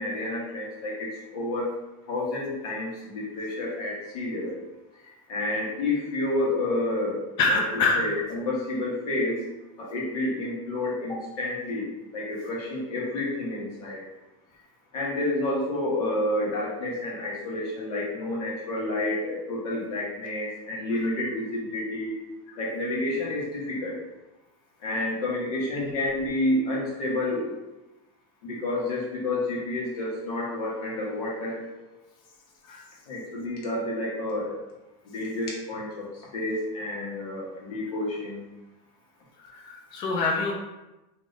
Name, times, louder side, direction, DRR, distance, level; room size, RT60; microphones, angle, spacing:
voice 1, 0.0-1.7 2.1-4.6 5.3-7.2 7.5-7.6 7.9-9.5 9.8-11.9 12.1-14.0 14.9-22.1 22.6-23.9 24.8-27.5 28.4-31.9 33.1-34.6 35.0-36.1 36.3-38.4, left 2 dB, 85° left, -4 dB, 1.2 m, -29 dB
voice 2, 7.4-8.0 25.7-25.9 32.6-32.8 39.4-40.5, left 3 dB, 25° left, 0 dB, 0.3 m, -26 dB
3.1 x 2.7 x 2.6 m, 1.0 s
supercardioid pair, 165°, 19 cm